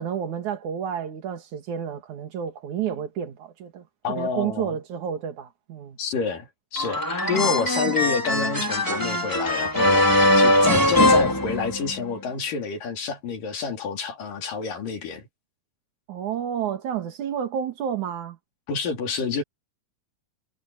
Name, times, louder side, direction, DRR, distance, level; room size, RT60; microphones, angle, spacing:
voice 1, 0.0-6.0 7.2-7.6 7.8-7.9 11.0-11.4 16.1-18.4, right 8 dB, 65° right, 3.3 m, -30 dB
voice 2, 4.0-4.8 6.0-15.3 18.7-19.4, left 5 dB, 80° left, 4.9 m, -28 dB
sound 1, 6.8-12.1, left 1 dB, 5° left, 4.2 m, -21 dB
omnidirectional pair, 3.8 m